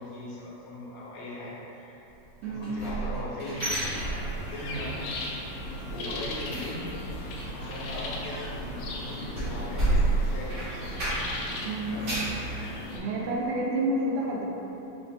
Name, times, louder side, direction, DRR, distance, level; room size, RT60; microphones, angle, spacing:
voice 1, 0.0-1.9 2.5-4.2 4.5-4.9 5.8-6.8 7.5-11.0 11.9-12.2 12.4-12.7, left 1 dB, 75° left, -7 dB, 1.7 m, -39 dB
sound 1, 2.4-4.8 5.0-5.4 5.7-11.5 11.8-12.4 12.9-13.0 13.4-13.5, right 2 dB, 55° right, 1.2 m, -31 dB
sound 2, 3.6-13.0, left 1 dB, 90° left, 1.5 m, -37 dB
voice 2, 12.9-14.4, right 1 dB, 75° right, -3 dB, 1.9 m, -29 dB
5.2 x 2.9 x 3.4 m, 3.0 s
omnidirectional pair, 3.8 m